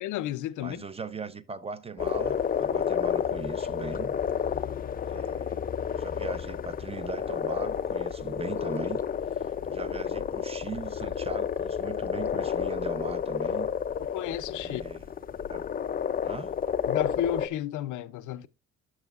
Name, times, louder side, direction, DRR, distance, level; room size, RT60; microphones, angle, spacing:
voice 1, 0.0-0.9 14.0-14.8 16.9-18.5, left 12 dB, 80° left, 0.6 m, -32 dB
voice 2, 0.6-4.1 5.1-9.0 9.3-13.7 14.6-15.0 15.5-15.6 16.2-16.5, right 5 dB, 20° right, 0.6 m, -40 dB
sound 1, 2.0-17.5, left 8 dB, 30° left, 0.4 m, -30 dB
10.5 x 6.2 x 2.4 m
cardioid pair, 90°, 30 cm